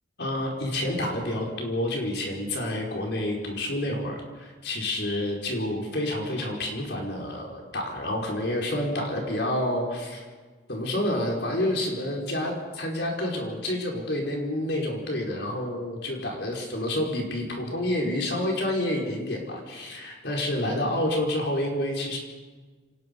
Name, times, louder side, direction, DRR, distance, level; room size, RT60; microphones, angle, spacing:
voice 1, 0.2-10.2 10.7-22.2, left 1 dB, 65° left, 0 dB, 5.0 m, -29 dB
26.0 x 19.0 x 5.5 m, 1.4 s
head